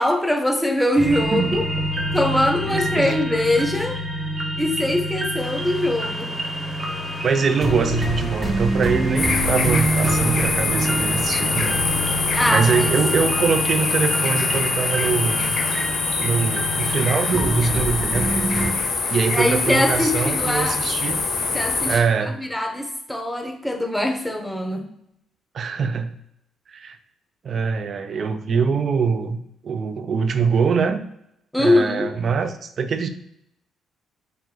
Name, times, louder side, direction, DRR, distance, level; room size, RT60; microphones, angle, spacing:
voice 1, 0.0-1.6 2.1-4.0 4.6-6.3 12.3-12.9 19.3-20.8 21.5-21.9 22.3-24.9 31.5-32.1, left 1 dB, 5° left, 4 dB, 0.7 m, -22 dB
sound 1, 1.0-18.7, right 1 dB, 30° right, 0.8 m, -26 dB
voice 2, 2.7-3.2 7.2-11.8 12.5-15.6 16.2-18.5 19.1-21.2 21.9-22.4 25.5-26.1 26.7-27.0 27.4-29.4 29.6-31.0 31.6-33.1, right 5 dB, 50° right, 10 dB, 0.4 m, -23 dB
sound 2, 5.4-15.9, left 3 dB, 45° left, 0.8 m, -38 dB
sound 3, 9.2-22.0, left 4 dB, 75° left, 1.1 m, -24 dB
4.2 x 2.6 x 3.8 m, 0.78 s
cardioid pair, 90°, 0 cm